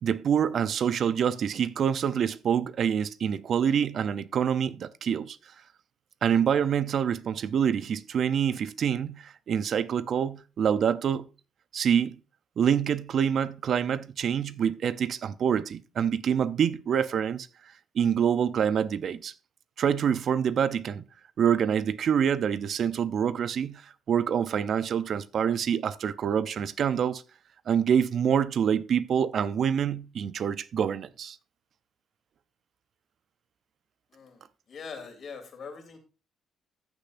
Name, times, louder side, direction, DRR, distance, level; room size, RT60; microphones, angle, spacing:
voice 1, 0.0-5.4 6.2-11.3 11.7-12.2 12.6-17.5 17.9-19.3 19.8-21.0 21.4-23.8 24.1-27.2 27.7-31.4, right 8 dB, 60° right, 0.6 m, -26 dB
voice 2, 34.7-36.0, left 5 dB, 55° left, 3.1 m, -42 dB
14.5 x 6.7 x 2.6 m
cardioid pair, 90°, 0 cm